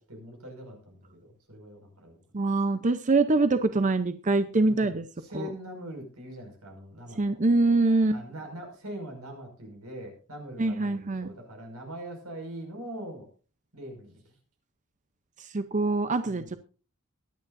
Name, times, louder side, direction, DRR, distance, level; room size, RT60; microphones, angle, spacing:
voice 1, 0.0-2.2 4.6-7.4 8.1-13.3 13.7-14.4 16.2-16.5, right 1 dB, 90° right, 3 dB, 5.7 m, -42 dB
voice 2, 2.3-5.0 5.3-5.5 7.2-8.2 10.6-11.3 15.4-16.6, right 3 dB, 35° right, 11 dB, 0.7 m, -24 dB
22.5 x 9.4 x 2.6 m, 0.36 s
head